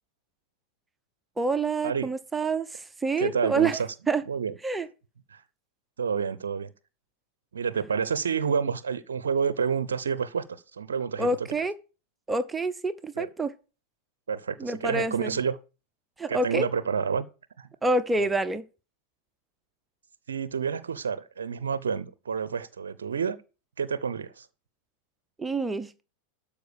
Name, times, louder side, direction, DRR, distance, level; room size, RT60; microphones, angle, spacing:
voice 1, 1.4-3.8 4.1-4.2 4.6-4.9 11.2-11.7 12.3-13.5 14.6-15.4 16.2-16.7 17.8-18.6 25.4-26.0, right 3 dB, 10° right, 0.7 m, -27 dB
voice 2, 3.2-3.9 4.3-4.5 5.3-5.4 6.0-6.7 7.5-10.4 10.7-11.3 13.2-13.3 14.3-15.6 16.3-17.3 17.6-17.7 18.2-18.3 20.3-23.4 23.8-24.5, right 6 dB, 65° right, 0.6 m, -29 dB
12.5 x 5.0 x 6.7 m
figure-of-eight pair, 90°, 0 cm